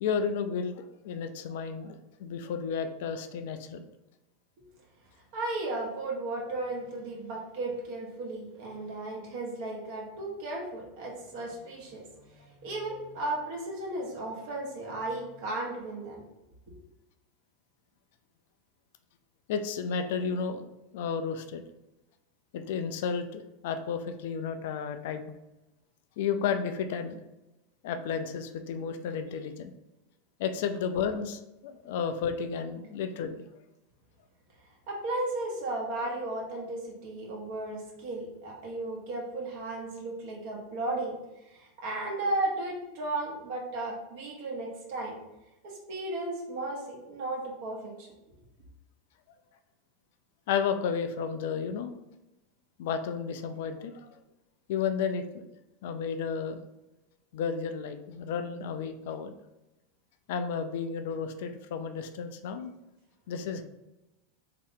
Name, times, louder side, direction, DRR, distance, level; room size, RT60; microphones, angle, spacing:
voice 1, 0.0-3.8 19.5-20.7 20.9-21.6 22.5-25.3 26.2-27.2 27.8-29.7 30.4-33.4 50.5-51.9 52.8-54.1 54.7-55.5 55.8-56.6 57.3-59.3 60.3-62.7 63.3-63.6, left 6 dB, 55° left, 9 dB, 0.3 m, -32 dB
voice 2, 5.3-16.2 34.9-41.2 41.4-45.2 45.6-48.1, right 2 dB, 55° right, -2 dB, 1.0 m, -35 dB
3.5 x 2.8 x 3.6 m, 0.96 s
figure-of-eight pair, 85°, 0 cm